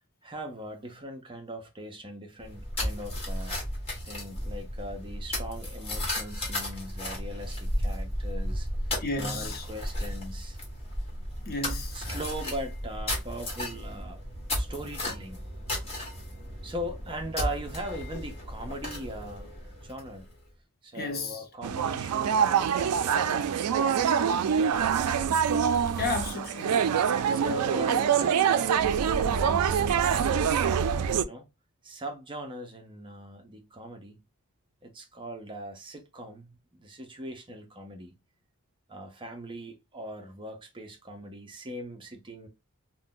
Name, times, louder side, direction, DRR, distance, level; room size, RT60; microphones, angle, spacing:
voice 1, 0.2-3.6 4.0-10.6 11.9-14.2 14.5-15.5 16.6-19.5 19.8-20.3 20.8-24.8 27.3-30.8 31.2-31.5 31.8-34.2 34.8-38.1 38.9-42.5, right 1 dB, 25° right, 0.5 m, -40 dB
sound 1, 2.4-20.3, left 1 dB, 25° left, 1.1 m, -34 dB
voice 2, 9.0-9.6 11.5-12.0 20.9-21.4 26.0-26.8, left 3 dB, 45° left, 0.6 m, -32 dB
sound 2, 21.6-31.2, right 7 dB, 90° right, 0.3 m, -25 dB
2.5 x 2.1 x 3.6 m
head